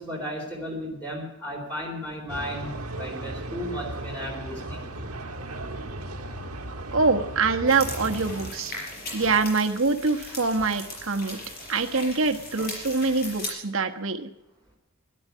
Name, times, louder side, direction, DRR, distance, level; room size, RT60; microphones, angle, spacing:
voice 1, 0.0-4.9, equal, 5° left, -2 dB, 4.0 m, -35 dB
sound 1, 2.3-8.5, right 1 dB, 90° right, 1.6 m, -36 dB
voice 2, 6.9-8.7 9.1-11.4 11.7-14.3, right 4 dB, 65° right, 5 dB, 1.3 m, -24 dB
sound 2, 7.7-13.5, left 2 dB, 45° left, 5.6 m, -38 dB
13.0 x 11.5 x 9.6 m, 0.89 s
head